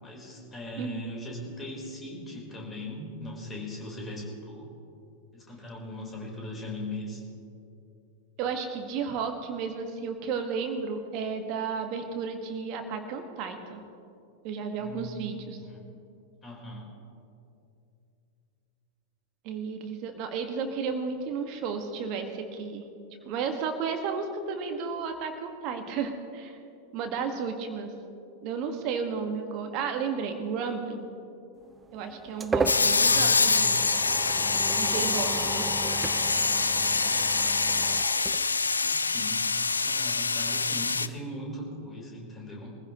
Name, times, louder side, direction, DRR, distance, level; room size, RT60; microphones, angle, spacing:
voice 1, 0.0-4.7 5.3-7.2 14.8-15.3 15.6-15.8 16.4-16.9 32.7-33.7 36.7-37.2 38.8-42.7, left 1 dB, 20° left, -1 dB, 4.2 m, -40 dB
voice 2, 8.4-13.8 14.4-15.6 19.4-22.8 23.2-26.6 26.9-27.9 28.4-31.1 31.9-33.8 34.7-35.7, right 5 dB, 40° right, 5 dB, 1.7 m, -33 dB
sound 1, 31.7-39.1, right 4 dB, 15° right, 0.6 m, -35 dB
sound 2, 32.7-41.1, left 4 dB, 75° left, 0.4 m, -25 dB
24.0 x 15.5 x 3.1 m, 2.6 s
figure-of-eight pair, 90°, 0 cm